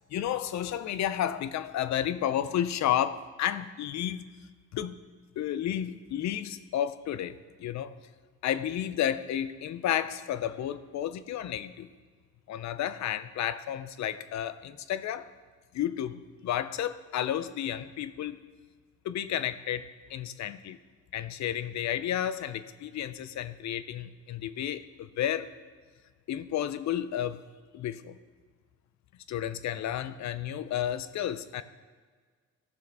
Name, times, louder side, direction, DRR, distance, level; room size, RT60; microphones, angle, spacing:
voice 1, 0.1-4.2 4.7-5.0 5.4-7.9 8.4-11.9 12.5-15.3 15.7-18.4 19.0-20.8 21.1-25.5 26.3-27.4 27.7-28.2 29.3-31.6, left 10 dB, 65° left, 13 dB, 0.6 m, -32 dB
14.5 x 6.3 x 3.5 m, 1.5 s
cardioid pair, 90°, 30 cm